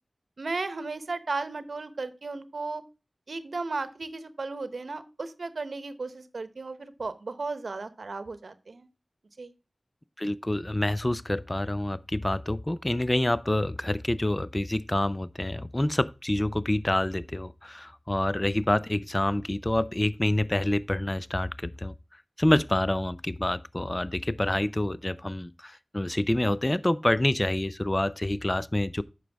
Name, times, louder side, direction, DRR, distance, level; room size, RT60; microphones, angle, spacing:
voice 1, 0.4-2.8 3.3-8.9 9.4-9.5, right 3 dB, 80° right, 0.9 m, -35 dB
voice 2, 10.2-21.9 22.4-29.0, left 1 dB, 25° left, 0.5 m, -27 dB
9.1 x 6.3 x 3.4 m
cardioid pair, 40°, 0 cm